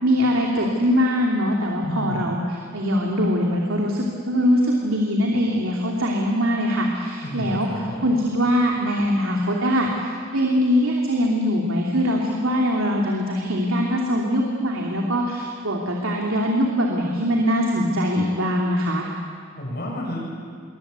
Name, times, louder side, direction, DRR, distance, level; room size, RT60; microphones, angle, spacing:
voice 1, 0.0-2.4 2.7-7.7 8.0-19.1, equal, 85° right, -1 dB, 3.0 m, -22 dB
voice 2, 1.8-2.3 7.2-8.2 19.6-20.2, left 1 dB, 50° left, -2 dB, 7.8 m, -31 dB
27.0 x 23.5 x 8.4 m, 2.1 s
head